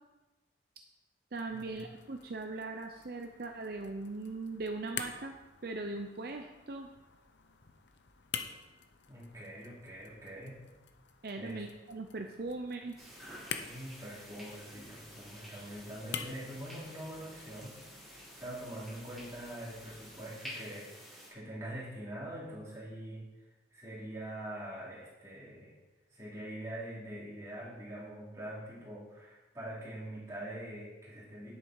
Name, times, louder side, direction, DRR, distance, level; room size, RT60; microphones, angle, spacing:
sound 1, 1.3-20.3, left 7 dB, 75° left, 0.8 m, -48 dB
voice 1, 1.3-5.4 5.6-6.9 11.2-13.1, right 3 dB, 55° right, 4 dB, 0.6 m, -40 dB
voice 2, 9.1-10.6 11.4-11.6 13.6-17.8 18.4-23.2 23.7-25.7 26.1-31.5, right 1 dB, 15° right, -7 dB, 3.9 m, -44 dB
sound 2, 13.0-21.3, equal, ahead, 4.2 m, -50 dB
9.9 x 8.6 x 4.7 m, 1.1 s
head